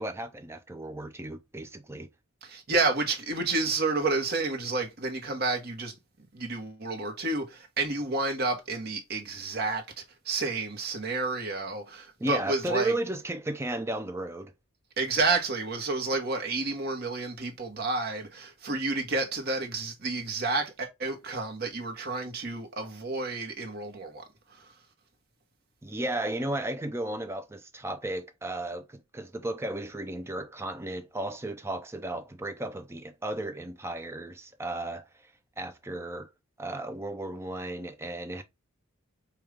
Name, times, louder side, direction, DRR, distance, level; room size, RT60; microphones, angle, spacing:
voice 1, 0.0-2.1 12.2-14.5 25.8-35.2 35.6-36.3 36.6-38.4, right 1 dB, 10° right, 0.3 m, -34 dB
voice 2, 2.4-5.9 6.3-12.9 15.0-24.7, right 3 dB, 45° right, 0.9 m, -30 dB
4.9 x 2.3 x 3.1 m
head